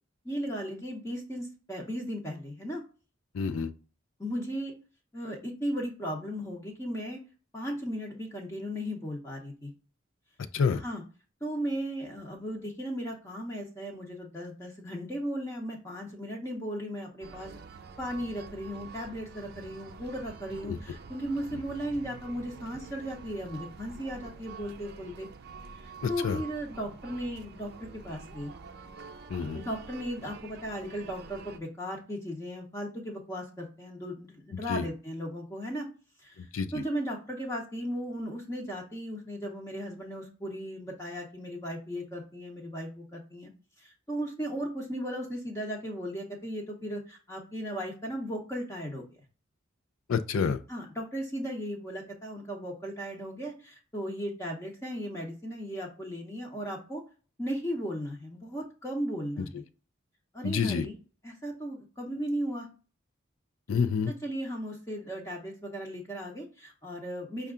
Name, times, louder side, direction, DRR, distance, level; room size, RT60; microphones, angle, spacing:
voice 1, 0.2-2.8 4.2-4.7 5.1-7.2 7.5-9.7 10.7-11.0 11.4-17.5 18.0-25.3 25.7-28.5 29.5-35.9 36.2-36.4 36.7-43.5 43.8-49.0 50.7-57.0 57.4-59.6 60.3-61.0 61.2-62.7 64.1-67.5, equal, 15° left, 0.7 m, -36 dB
voice 2, 3.3-3.7 10.5-10.8 20.6-20.8 26.0-26.4 29.3-29.6 34.7-34.9 36.4-36.8 50.1-50.6 59.4-59.5 60.4-60.9 63.7-64.1, left 6 dB, 80° left, 0.4 m, -28 dB
sound 1, 17.2-31.6, right 5 dB, 50° right, 0.4 m, -47 dB
5.4 x 2.3 x 3.6 m
head